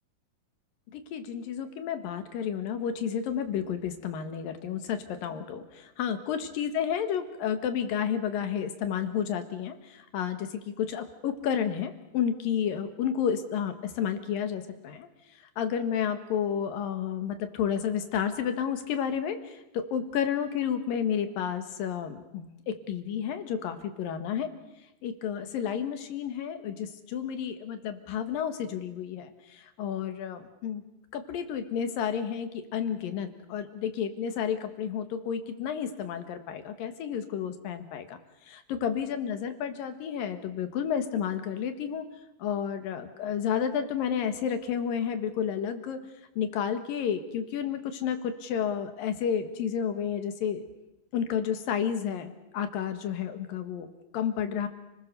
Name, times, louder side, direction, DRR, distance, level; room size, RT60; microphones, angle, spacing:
voice 1, 0.9-15.1 15.6-24.5 25.0-30.8 31.1-38.2 38.5-42.1 42.4-46.0 46.4-50.6 51.1-53.9 54.1-54.7, left 8 dB, 80° left, 8 dB, 3.3 m, -31 dB
30.0 x 20.5 x 6.7 m, 0.94 s
omnidirectional pair, 4.0 m